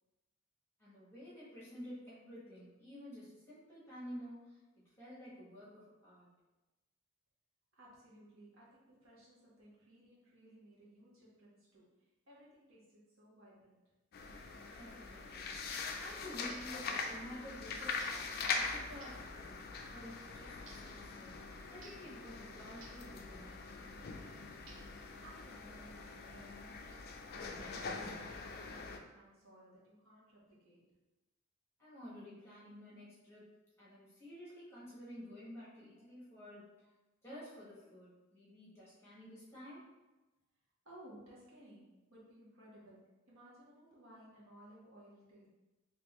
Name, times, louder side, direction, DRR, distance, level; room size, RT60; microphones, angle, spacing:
voice 1, 0.8-4.6 5.0-6.3 14.8-15.5 15.8-18.1 18.4-21.4 21.7-23.9 31.8-36.7 37.2-39.9, equal, 15° left, -9 dB, 1.4 m, -51 dB
voice 2, 7.8-13.8 25.2-30.9 36.0-36.1 37.7-37.8 40.8-45.5, right 1 dB, 90° right, -6 dB, 1.3 m, -59 dB
sound 1, 14.1-29.0, left 4 dB, 50° left, 0.4 m, -43 dB
sound 2, 15.7-16.0 16.5-16.8 18.0-18.3 19.0-19.3 20.7-21.0 21.8-22.1 22.8-23.1 24.7-25.1, right 4 dB, 70° right, 0.5 m, -58 dB
3.6 x 2.9 x 3.0 m, 1.1 s
head